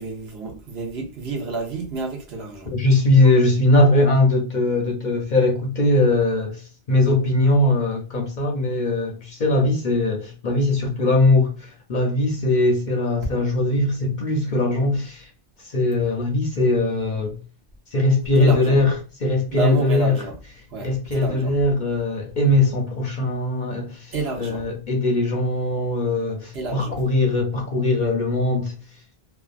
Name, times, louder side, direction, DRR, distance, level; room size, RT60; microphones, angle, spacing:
voice 1, 0.0-2.7 18.4-18.8 19.5-20.3 20.7-21.5 24.1-24.6 26.5-27.0, right 3 dB, 65° right, 1.1 m, -29 dB
voice 2, 2.7-15.3 15.6-17.4 17.9-19.0 19.2-20.2 20.8-28.8, left 2 dB, 55° left, 0.6 m, -20 dB
2.6 x 2.4 x 2.4 m
omnidirectional pair, 1.2 m